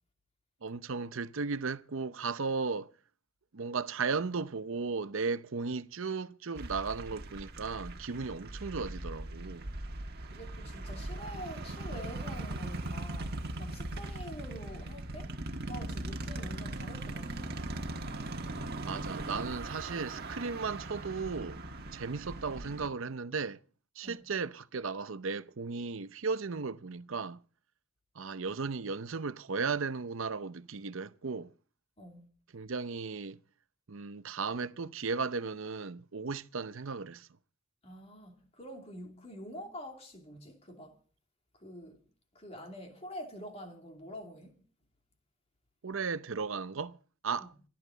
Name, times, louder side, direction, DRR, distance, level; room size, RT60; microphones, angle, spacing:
voice 1, 0.6-2.9 3.5-9.7 18.9-21.6 21.9-23.6 24.0-27.4 28.2-31.5 32.5-33.4 33.9-37.3 45.8-47.0 47.2-47.5, right 4 dB, 65° right, 0.7 m, -35 dB
sound 1, 6.6-22.9, right 2 dB, 45° right, 1.5 m, -40 dB
voice 2, 10.3-15.3 15.7-17.6 24.0-24.2 32.0-32.3 37.8-41.0 41.5-42.0 42.3-44.6 47.4-47.5, equal, 30° left, 2.7 m, -46 dB
26.5 x 10.5 x 3.9 m
head